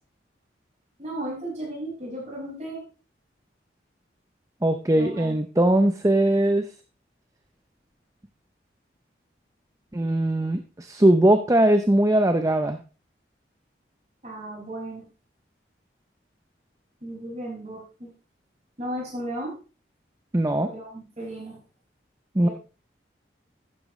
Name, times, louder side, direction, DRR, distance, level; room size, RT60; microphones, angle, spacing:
voice 1, 1.0-2.8 4.9-5.3 14.2-15.0 17.0-18.1 18.8-19.5 20.6-21.6 22.4-22.5, right 1 dB, 40° right, -3 dB, 5.7 m, -35 dB
voice 2, 4.6-6.7 9.9-12.8 20.3-20.7 22.3-22.5, right 1 dB, 20° right, 8 dB, 0.5 m, -20 dB
11.5 x 9.7 x 3.1 m, 0.34 s
head